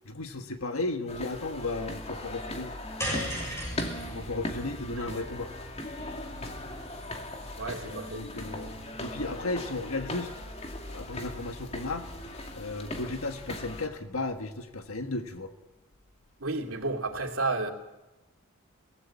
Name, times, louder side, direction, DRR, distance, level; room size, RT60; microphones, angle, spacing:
voice 1, 0.0-2.7 4.1-5.5 7.8-8.7 9.0-10.3 10.9-12.1 12.5-15.5, left 2 dB, 85° left, 6 dB, 1.6 m, -34 dB
sound 1, 1.1-13.9, left 1 dB, 30° left, 2.4 m, -39 dB
sound 2, 3.0-7.4, equal, 15° left, 6.8 m, -38 dB
voice 2, 7.5-8.2 16.4-17.7, right 3 dB, 75° right, 3 dB, 2.9 m, -31 dB
23.5 x 18.0 x 8.7 m, 1.0 s
head